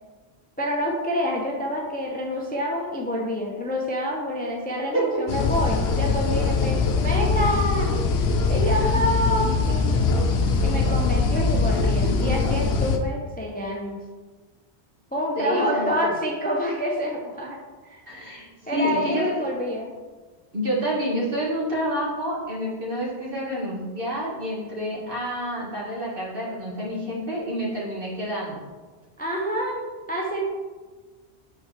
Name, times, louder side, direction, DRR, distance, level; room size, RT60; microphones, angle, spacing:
voice 1, 0.6-7.9 8.2-10.1 10.6-14.0 15.1-18.0 18.7-19.9 29.2-30.5, equal, 10° left, -1 dB, 0.5 m, -27 dB
sound 1, 5.3-13.0, left 4 dB, 75° left, 0.9 m, -22 dB
voice 2, 15.4-15.9 18.1-19.2 20.5-28.6, equal, 55° right, -5 dB, 1.8 m, -28 dB
6.9 x 4.7 x 3.3 m, 1.3 s
omnidirectional pair, 1.1 m